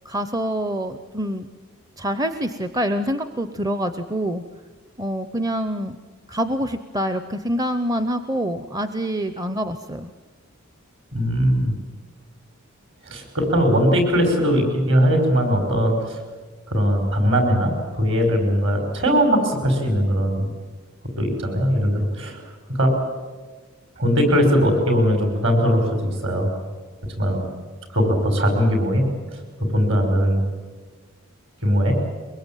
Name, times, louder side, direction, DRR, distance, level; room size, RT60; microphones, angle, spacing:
voice 1, 0.0-1.5 2.0-4.4 5.0-6.0 6.3-10.1, equal, 15° right, 10 dB, 0.7 m, -26 dB
voice 2, 11.1-11.7 13.0-16.2 16.7-20.5 21.2-22.4 22.7-22.9 24.0-26.5 27.2-27.5 27.9-29.1 29.3-29.4 29.7-30.4 31.6-32.0, equal, 55° right, 4 dB, 5.7 m, -20 dB
23.0 x 22.5 x 9.1 m, 1.4 s
head